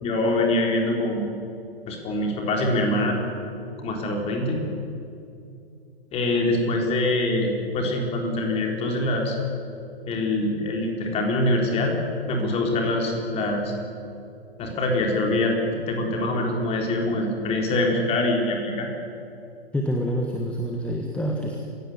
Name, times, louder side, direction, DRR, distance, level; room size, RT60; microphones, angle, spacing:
voice 1, 0.0-1.3 1.9-3.2 3.8-4.6 6.1-9.3 10.1-11.9 12.3-13.7 14.6-18.9, left 1 dB, 20° left, 1 dB, 4.1 m, -24 dB
voice 2, 19.7-21.6, equal, 5° left, 1 dB, 1.5 m, -27 dB
26.5 x 16.5 x 8.6 m, 2.6 s
figure-of-eight pair, 120°, 32 cm